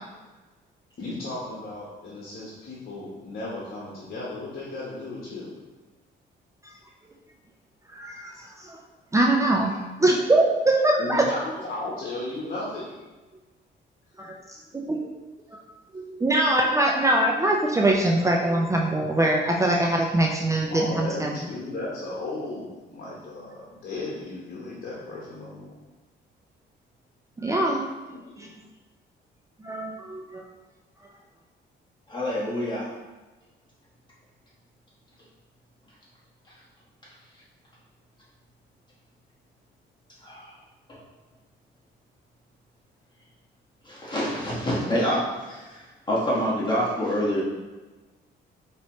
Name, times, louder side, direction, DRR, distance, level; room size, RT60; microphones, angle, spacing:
voice 1, 1.0-5.5 9.7-9.8 11.0-12.9 20.7-25.7 28.1-28.3, left 2 dB, 50° left, -6 dB, 1.2 m, -35 dB
voice 2, 7.9-8.8 9.1-9.7 10.0-11.2 14.2-14.4 14.7-15.0 15.5-15.6 15.9-21.3 27.4-27.9 28.4-28.5 29.6-30.4, right 1 dB, 15° right, -1 dB, 0.5 m, -23 dB
voice 3, 32.1-32.9 40.2-40.5 40.9-41.0 43.8-47.4, equal, 25° left, -7 dB, 1.4 m, -27 dB
5.3 x 3.0 x 3.1 m, 1.2 s
cardioid pair, 90°, 20 cm